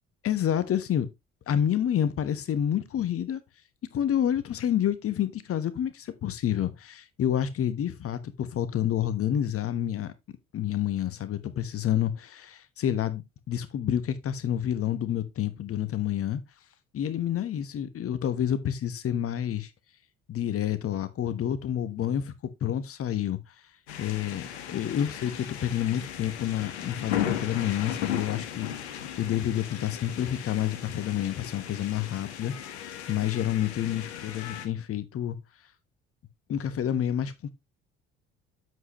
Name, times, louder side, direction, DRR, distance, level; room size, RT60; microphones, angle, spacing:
voice 1, 0.2-1.1 1.5-3.4 3.9-10.1 10.5-16.4 16.9-19.7 20.3-22.3 22.6-23.5 24.0-35.4 36.5-37.5, left 10 dB, 45° left, 1.2 m, -29 dB
sound 1, 23.9-34.7, left 10 dB, 75° left, 1.3 m, -36 dB
8.0 x 7.4 x 3.0 m
figure-of-eight pair, 55°, 33 cm